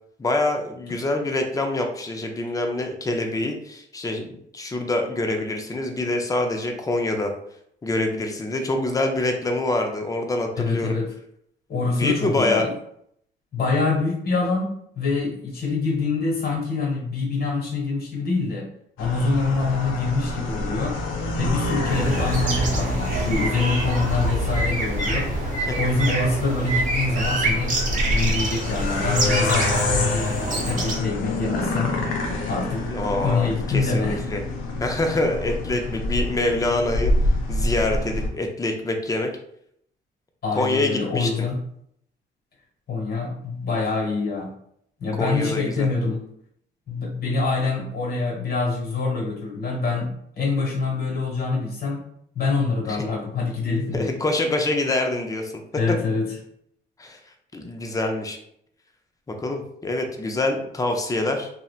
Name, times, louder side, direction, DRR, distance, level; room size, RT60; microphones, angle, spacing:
voice 1, 0.2-7.3 7.8-11.0 11.9-12.7 25.6-25.8 32.9-34.4 34.8-37.1 37.5-39.3 40.5-41.5 45.2-45.9 52.9-53.0 53.9-55.5 57.0-57.2 57.5-58.4 59.3-61.5, left 2 dB, 15° left, 3 dB, 0.4 m, -25 dB
voice 2, 10.5-11.1 11.7-12.7 13.5-14.7 15.0-18.7 19.0-21.0 21.4-25.3 25.8-27.7 28.1-32.0 32.5-32.9 33.2-34.2 40.4-41.6 42.9-44.5 45.0-46.2 46.9-50.1 50.4-52.0 52.3-54.1 55.7-56.3, left 3 dB, 55° left, -2 dB, 1.2 m, -25 dB
sound 1, 19.0-38.3, left 2 dB, 90° left, 0.5 m, -27 dB
sound 2, 21.9-31.0, right 2 dB, 40° right, 0.7 m, -26 dB
2.7 x 2.1 x 2.3 m, 0.71 s
cardioid pair, 90°, 20 cm